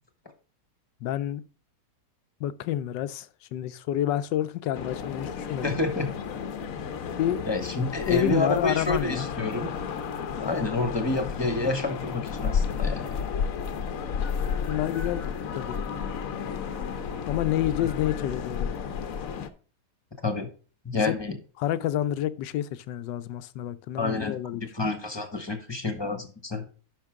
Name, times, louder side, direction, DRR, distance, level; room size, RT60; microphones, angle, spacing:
voice 1, 1.0-1.4 2.4-5.7 7.2-7.4 8.1-9.3 14.7-15.2 15.6-15.8 17.3-18.7 20.9-21.1 21.6-24.7, left 12 dB, 80° left, 1.3 m, -29 dB
sound 1, 4.7-19.5, left 6 dB, 60° left, 1.1 m, -32 dB
voice 2, 5.6-6.1 7.4-9.7 10.4-13.1 20.2-20.5 20.8-21.4 24.0-24.4 24.7-26.7, left 2 dB, 15° left, 1.1 m, -28 dB
10.5 x 5.9 x 3.6 m
omnidirectional pair, 1.9 m